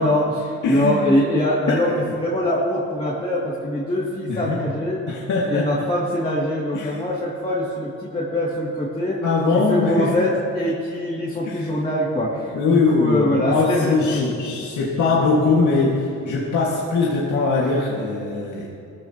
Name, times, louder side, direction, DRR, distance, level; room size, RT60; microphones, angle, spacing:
voice 1, 0.0-5.0 5.5-9.2 9.5-14.2, left 1 dB, 20° left, -7 dB, 2.6 m, -23 dB
voice 2, 0.6-1.0 1.7-1.8 4.3-4.6 5.1-5.7 6.7-7.0 9.2-10.3 11.4-11.7 12.5-18.7, left 3 dB, 75° left, -4 dB, 2.1 m, -21 dB
20.0 x 14.5 x 3.0 m, 2.7 s
cardioid pair, 90°, 30 cm